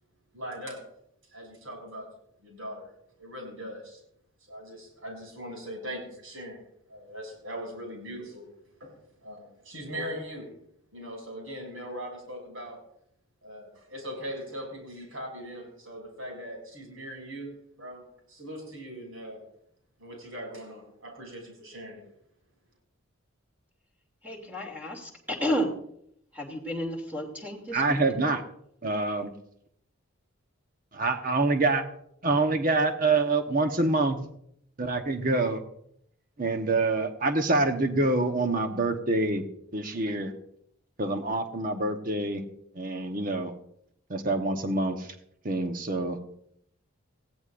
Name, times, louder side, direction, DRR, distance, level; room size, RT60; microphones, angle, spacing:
voice 1, 0.3-0.8 1.3-2.1 2.4-2.9 3.2-4.0 4.5-6.6 6.9-8.4 8.8-8.9 9.2-10.5 10.9-12.8 13.4-19.4 20.0-22.0, equal, 75° right, 0 dB, 7.1 m, -40 dB
voice 2, 24.2-25.7 26.3-28.0, equal, 10° right, 1 dB, 2.7 m, -32 dB
voice 3, 27.7-28.4 28.8-29.3 30.9-31.8 32.2-34.2 34.8-35.6 36.4-39.4 39.7-40.3 41.0-42.4 42.7-43.5 44.1-45.1 45.4-46.2, right 2 dB, 40° right, 6 dB, 1.1 m, -26 dB
19.5 x 16.0 x 2.6 m, 0.71 s
head